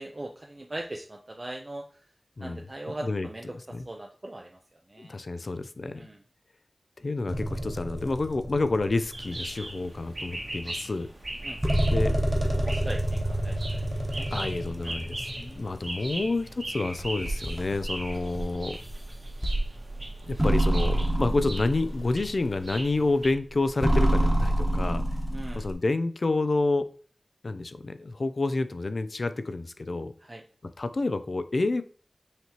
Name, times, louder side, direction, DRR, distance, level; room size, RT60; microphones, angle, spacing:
voice 1, 0.0-2.0 2.4-5.2 5.9-6.2 11.4-11.6 12.1-14.3 14.8-15.0 25.3-25.7 30.2-30.4, right 1 dB, 40° right, 2 dB, 0.4 m, -40 dB
voice 2, 5.0-6.1 7.0-11.1 11.9-12.1 14.3-18.8 20.2-25.0 25.5-26.9 27.4-30.1 30.8-31.8, left 2 dB, 65° left, 11 dB, 0.3 m, -29 dB
sound 1, 7.3-9.4 10.1-10.2 11.4-16.4 17.0-22.8 23.3-25.7, right 1 dB, 15° right, 1.0 m, -28 dB
sound 2, 9.1-23.3, right 1 dB, 65° right, 1.5 m, -40 dB
5.6 x 3.0 x 2.9 m, 0.42 s
wide cardioid pair, 70°, 0 cm